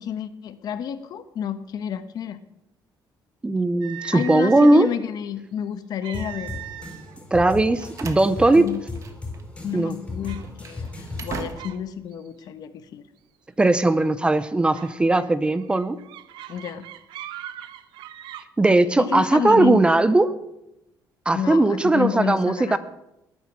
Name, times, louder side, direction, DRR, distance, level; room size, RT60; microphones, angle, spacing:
voice 1, 0.0-2.4 4.1-6.6 8.5-8.8 9.6-13.0 16.5-16.8 19.0-19.8 21.3-22.8, left 9 dB, 55° left, 11 dB, 1.2 m, -30 dB
voice 2, 3.4-4.9 7.3-8.7 9.7-9.9 13.6-16.0 18.6-20.3 21.3-22.8, right 2 dB, 15° right, 14 dB, 0.7 m, -18 dB
sound 1, 3.8-5.0 6.0-7.2 7.5-7.7 8.4-8.5 9.0-9.5 10.2-10.5 11.1-11.8 12.1-12.4 13.9-14.2 14.7-18.4, right 12 dB, 85° right, 1.0 m, -40 dB
sound 2, 6.1-11.6, left 3 dB, 15° left, 4.3 m, -36 dB
Slam, 7.4-9.4 9.7-9.9 10.4-12.0, right 5 dB, 40° right, 1.5 m, -39 dB
19.5 x 9.4 x 6.2 m, 0.87 s
cardioid pair, 145°, 8 cm